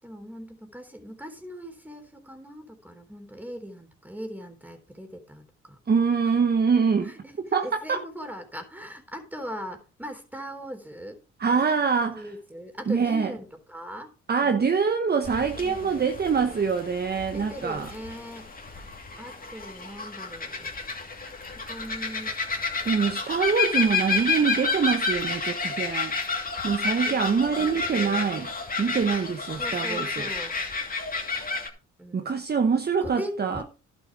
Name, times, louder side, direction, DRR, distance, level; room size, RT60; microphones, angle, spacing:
voice 1, 0.0-5.8 7.0-7.3 7.6-11.2 12.2-14.1 14.4-14.6 15.4-16.1 16.4-16.6 17.3-18.8 19.2-20.7 21.5-22.3 24.3-24.5 27.0-28.4 29.6-30.6 32.0-32.5 33.0-33.6, equal, 5° right, 3.6 m, -40 dB
voice 2, 5.9-7.1 7.5-8.0 11.4-12.3 12.9-13.3 14.3-17.9 22.8-26.1 26.6-28.5 28.8-30.3 32.1-33.6, right 5 dB, 30° right, 1.1 m, -24 dB
sound 1, 15.2-31.7, left 4 dB, 30° left, 2.6 m, -30 dB
11.5 x 7.2 x 5.0 m
cardioid pair, 90°, 30 cm